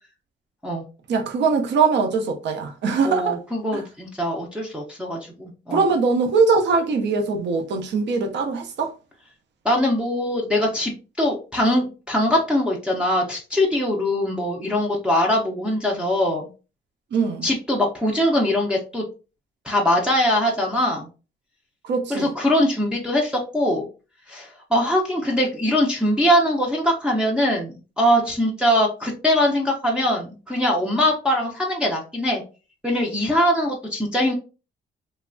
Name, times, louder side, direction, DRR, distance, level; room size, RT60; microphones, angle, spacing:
voice 1, 1.1-3.4 3.7-3.8 5.7-8.9 17.1-17.5 21.8-22.3, right 4 dB, 55° right, 0.5 m, -21 dB
voice 2, 3.0-5.8 9.6-10.9 11.2-16.5 17.4-19.0 19.7-21.1 22.1-23.8 24.3-32.4 32.8-34.3, left 1 dB, 5° right, 0.5 m, -22 dB
3.1 x 2.2 x 2.5 m
cardioid pair, 140°, 21 cm